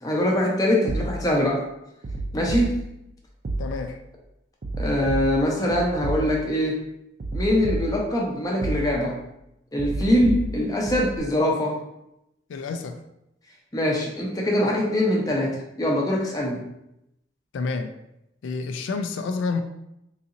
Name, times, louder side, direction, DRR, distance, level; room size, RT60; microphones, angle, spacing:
voice 1, 0.0-1.6 2.3-2.7 4.8-6.8 7.3-9.2 9.7-11.7 13.7-16.6, left 1 dB, 20° left, -1 dB, 0.6 m, -23 dB
sound 1, 0.9-1.5 2.0-3.1 3.4-4.1 4.6-6.7 7.2-8.3 8.6-9.2 9.8-11.2, right 1 dB, 45° right, 0.4 m, -31 dB
voice 2, 3.6-4.0 12.5-13.0 15.3-15.4 17.5-17.9 18.4-19.6, left 4 dB, 90° left, 7 dB, 0.3 m, -29 dB
3.9 x 2.8 x 2.5 m, 0.84 s
head